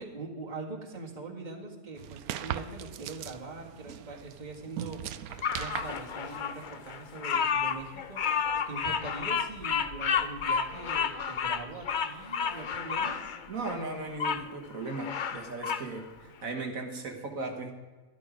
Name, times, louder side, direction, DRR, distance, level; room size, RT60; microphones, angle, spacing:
voice 1, 0.0-8.4 8.7-13.2, right 3 dB, 30° right, 0 dB, 1.9 m, -42 dB
sound 1, 2.0-7.0, right 10 dB, 90° right, 1.1 m, -40 dB
Bird vocalization bird call bird song, 5.4-14.4 14.9-15.9, left 6 dB, 50° left, 0.6 m, -31 dB
voice 2, 13.5-17.7, right 3 dB, 70° right, 2 dB, 1.8 m, -37 dB
13.0 x 12.0 x 5.1 m, 1.3 s
omnidirectional pair, 1.5 m